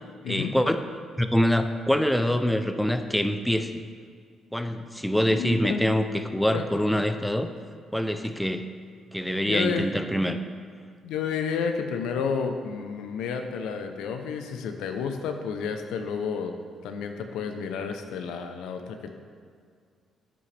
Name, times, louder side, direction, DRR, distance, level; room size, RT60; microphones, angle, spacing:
voice 1, 0.3-3.7 4.5-7.5 7.9-8.7 9.1-10.4, equal, 5° left, 8 dB, 0.5 m, -25 dB
voice 2, 5.4-5.9 6.5-6.6 9.5-9.9 11.0-16.5 16.8-19.1, left 6 dB, 90° left, 6 dB, 0.7 m, -30 dB
9.6 x 7.7 x 3.4 m, 2.1 s
cardioid pair, 90°, 0 cm